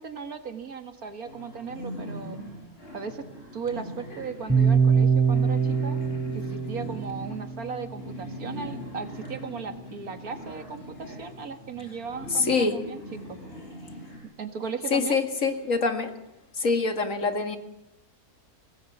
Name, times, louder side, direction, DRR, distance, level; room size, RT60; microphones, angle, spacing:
voice 1, 0.0-2.4 2.9-3.2 3.5-6.0 6.3-13.0 13.3-13.4 14.4-15.2, right 5 dB, 70° right, 8 dB, 2.3 m, -36 dB
sound 1, 1.2-14.2, equal, 40° left, 6.1 m, -41 dB
sound 2, 4.5-8.6, right 6 dB, 5° right, 4.5 m, -24 dB
voice 2, 12.3-12.8 14.9-16.1 16.6-17.6, left 4 dB, 60° left, 7 dB, 2.4 m, -25 dB
25.5 x 19.0 x 7.3 m, 0.86 s
omnidirectional pair, 1.6 m